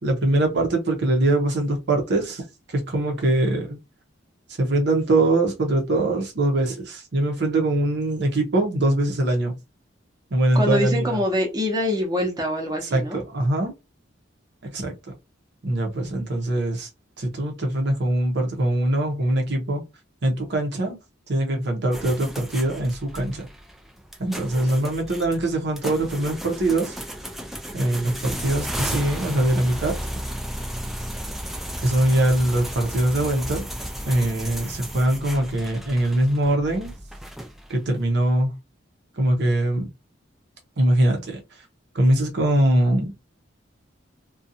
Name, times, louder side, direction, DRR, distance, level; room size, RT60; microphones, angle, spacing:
voice 1, 0.0-3.8 4.6-9.6 10.3-11.2 12.8-13.7 14.7-15.1 15.6-16.9 17.2-19.8 20.2-21.0 21.3-23.5 24.2-27.0 27.7-29.9 31.8-33.7 34.1-36.9 37.7-38.5 39.1-39.9 40.8-41.4 41.9-43.1, right 1 dB, 60° right, 0.7 m, -22 dB
voice 2, 10.5-13.2, left 1 dB, 20° right, 0.7 m, -24 dB
sound 1, 21.9-37.9, equal, ahead, 0.3 m, -34 dB
2.5 x 2.2 x 2.6 m
head